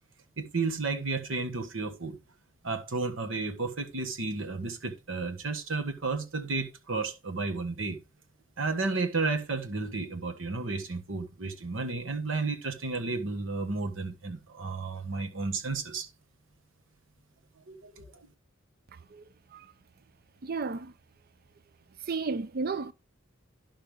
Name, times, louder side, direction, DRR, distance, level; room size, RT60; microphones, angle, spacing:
voice 1, 0.4-2.2 2.6-8.0 8.6-16.1 17.7-18.1, right 3 dB, 80° right, 1.4 m, -32 dB
voice 2, 18.9-19.7 20.4-20.9 22.0-22.9, right 4 dB, 50° right, 0.6 m, -34 dB
12.0 x 5.6 x 3.5 m
head